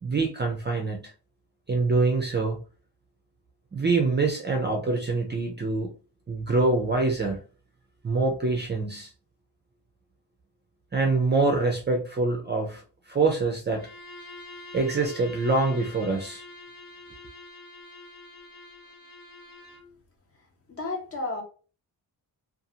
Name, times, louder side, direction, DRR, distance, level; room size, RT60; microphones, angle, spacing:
voice 1, 0.0-1.1 1.7-2.6 3.7-5.9 6.3-7.4 8.0-9.1 10.9-12.8 13.1-13.9 14.7-16.4, right 3 dB, 25° right, 0.4 m, -25 dB
Bowed string instrument, 13.7-19.9, left 2 dB, 60° left, 1.3 m, -46 dB
voice 2, 20.7-21.4, left 2 dB, 35° left, 0.9 m, -32 dB
2.6 x 2.5 x 2.7 m
wide cardioid pair, 140°, 42 cm